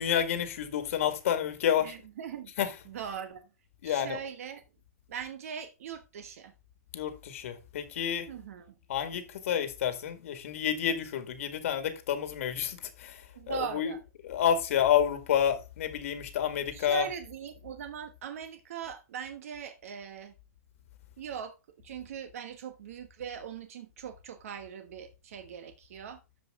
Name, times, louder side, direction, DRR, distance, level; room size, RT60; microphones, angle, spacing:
voice 1, 0.0-1.9 2.6-2.7 3.8-4.2 6.9-8.3 8.9-13.2 13.5-13.9 14.2-17.1, left 9 dB, 55° left, 2.0 m, -29 dB
voice 2, 1.8-2.5 2.8-3.5 3.8-4.6 5.1-6.5 8.3-8.7 13.3-14.0 16.7-20.3 21.2-21.5 21.8-26.2, right 8 dB, 60° right, 1.2 m, -40 dB
13.0 x 5.2 x 3.7 m
hypercardioid pair, 160°, 9 cm